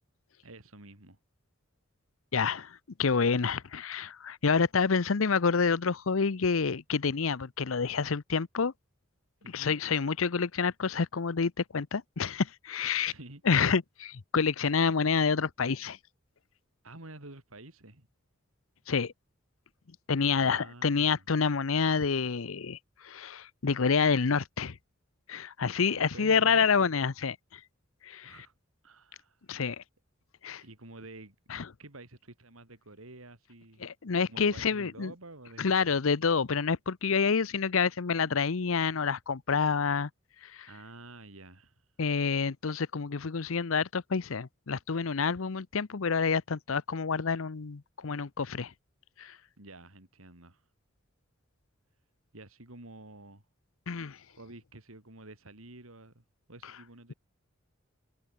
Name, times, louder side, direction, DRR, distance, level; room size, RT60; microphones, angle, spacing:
voice 1, 0.4-1.2 9.4-9.8 13.0-13.4 16.8-18.1 20.3-21.2 25.9-26.9 28.2-28.5 28.8-29.5 30.6-31.4 31.8-33.8 34.3-35.9 40.7-41.9 49.6-50.6 52.3-53.4 54.3-57.1, right 2 dB, 90° right, 3.6 m, -49 dB
voice 2, 2.3-8.7 9.5-13.1 13.4-16.0 18.9-19.1 20.1-24.8 25.3-27.6 28.0-28.3 29.5-29.8 30.4-30.6 31.5-31.7 33.8-35.1 35.6-40.1 40.4-40.7 42.0-48.7 49.2-49.4 53.9-54.2, left 5 dB, 75° left, 0.7 m, -28 dB
head